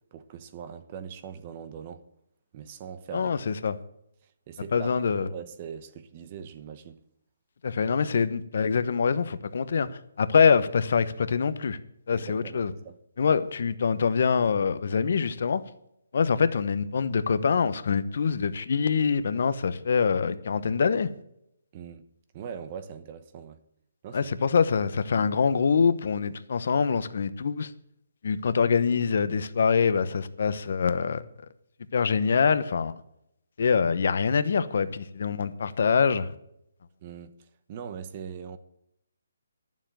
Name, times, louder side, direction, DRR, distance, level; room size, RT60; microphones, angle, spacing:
voice 1, 0.1-2.0 2.5-3.3 4.2-4.9 5.2-7.0 12.1-13.0 21.7-22.0 22.3-23.6 24.0-24.5 37.0-38.6, right 7 dB, 30° right, 0.9 m, -41 dB
voice 2, 3.1-3.7 4.7-5.3 7.6-9.9 10.2-11.8 12.1-12.7 13.2-15.6 16.1-21.1 24.1-27.7 28.2-31.2 31.9-32.9 33.6-36.3, left 6 dB, 55° left, 1.0 m, -24 dB
11.5 x 7.3 x 9.1 m
hypercardioid pair, 165°, 0 cm